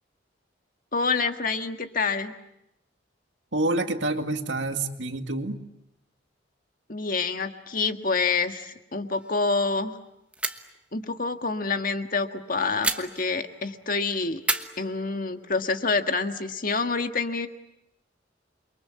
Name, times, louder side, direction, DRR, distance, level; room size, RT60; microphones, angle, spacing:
voice 1, 0.9-2.3 6.9-10.0 10.9-14.4 14.8-17.5, left 4 dB, 50° left, 7 dB, 1.6 m, -27 dB
voice 2, 3.5-5.6, right 2 dB, 85° right, 6 dB, 2.1 m, -27 dB
sound 1, 9.1-9.5 9.7-9.8 10.3-10.8 12.8-13.7 14.4-15.6, right 2 dB, 5° right, 1.2 m, -32 dB
29.0 x 23.5 x 8.4 m, 0.84 s
head